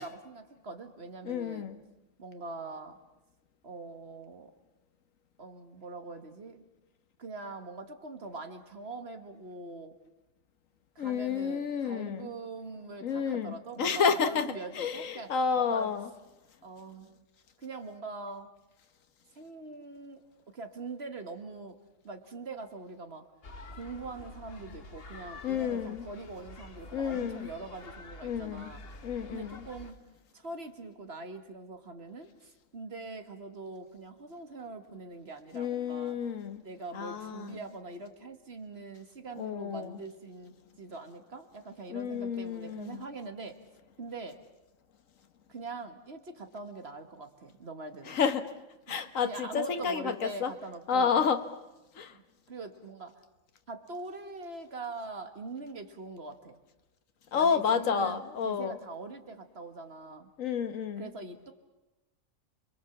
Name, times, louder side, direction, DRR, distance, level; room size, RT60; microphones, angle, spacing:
voice 1, 0.0-1.8 2.2-3.0 3.6-4.5 5.4-6.7 7.2-10.0 11.0-15.9 16.6-17.1 17.6-18.5 19.4-21.8 22.0-23.3 23.7-28.8 29.3-30.0 30.3-36.2 36.6-43.6 44.0-44.4 45.5-48.2 48.9-51.3 52.1-52.2 52.5-53.2 53.7-56.6 57.3-60.3 61.0-61.5, right 3 dB, 50° right, 7 dB, 1.9 m, -43 dB
voice 2, 1.2-1.8 11.0-12.3 13.0-14.5 14.8-16.1 25.4-26.1 26.9-27.5 28.2-28.7 29.0-29.6 35.5-36.6 36.9-37.6 39.4-40.0 41.9-43.0 48.1-48.4 48.9-50.5 50.9-51.4 51.9-52.1 57.3-58.8 60.4-61.1, left 6 dB, 80° left, 9 dB, 1.6 m, -30 dB
sound 1, 23.4-29.9, left 3 dB, 50° left, 1.5 m, -48 dB
30.0 x 22.5 x 7.2 m, 1.0 s
omnidirectional pair, 1.3 m